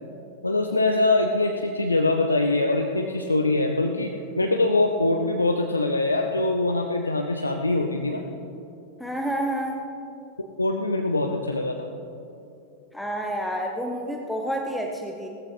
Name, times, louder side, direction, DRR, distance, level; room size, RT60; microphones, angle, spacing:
voice 1, 0.4-8.2 10.6-11.9, left 2 dB, 80° left, 3 dB, 0.6 m, -23 dB
voice 2, 9.0-9.8 12.9-15.3, equal, ahead, 1 dB, 0.9 m, -29 dB
17.0 x 14.0 x 3.4 m, 2.7 s
figure-of-eight pair, 90°, 0 cm